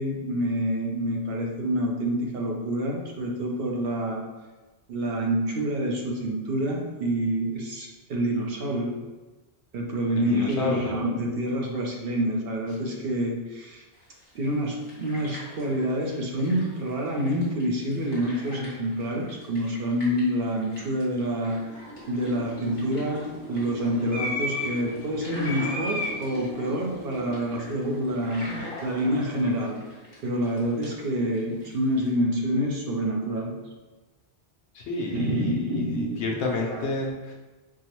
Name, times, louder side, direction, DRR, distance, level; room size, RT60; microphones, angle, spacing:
voice 1, 0.0-4.3 4.9-9.0 9.7-13.8 14.3-21.6 22.1-29.8 30.2-33.6 35.1-36.2 36.7-36.8, equal, 65° right, 0 dB, 0.8 m, -27 dB
voice 2, 10.1-11.0 34.7-37.3, left 3 dB, 85° left, 0 dB, 0.9 m, -30 dB
sound 1, 13.9-32.1, left 1 dB, 25° left, 1.2 m, -46 dB
sound 2, 21.5-29.9, left 1 dB, 55° left, 1.1 m, -36 dB
4.4 x 2.0 x 2.9 m, 1.2 s
omnidirectional pair, 1.1 m